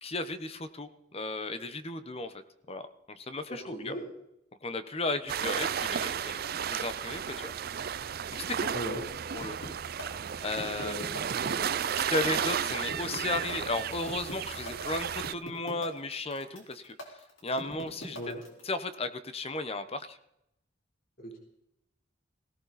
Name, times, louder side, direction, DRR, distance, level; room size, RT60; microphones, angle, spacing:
voice 1, 0.0-2.3 2.7-3.9 4.6-6.4 6.7-7.5 8.3-8.7 9.3-9.6 10.4-11.0 12.0-16.9 17.4-18.2 18.6-20.2, left 2 dB, 30° left, 11 dB, 0.9 m, -35 dB
voice 2, 3.5-4.1 8.7-9.0 10.7-11.6 18.1-18.4 21.2-21.4, equal, 50° left, -1 dB, 3.6 m, -38 dB
sound 1, 5.3-15.3, right 8 dB, 50° right, 0.5 m, -33 dB
sound 2, 9.4-18.6, equal, 85° left, 4.0 m, -42 dB
17.5 x 17.0 x 4.1 m, 0.81 s
head